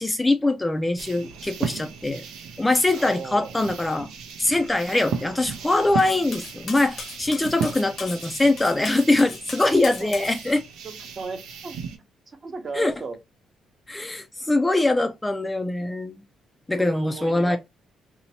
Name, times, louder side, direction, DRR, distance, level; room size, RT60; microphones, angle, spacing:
voice 1, 0.0-2.2 2.6-4.1 4.4-10.6 12.7-12.9 13.9-16.2 16.7-17.6, left 2 dB, 15° left, 0.3 m, -23 dB
sound 1, 1.0-12.0, right 7 dB, 90° right, 0.5 m, -36 dB
voice 2, 3.0-3.5 10.0-10.1 10.8-11.8 12.3-13.2 16.7-17.6, right 4 dB, 40° right, 0.7 m, -36 dB
Cutlery silverware, 6.0-10.4, left 4 dB, 55° left, 0.8 m, -38 dB
2.8 x 2.0 x 2.7 m
cardioid pair, 90°, 0 cm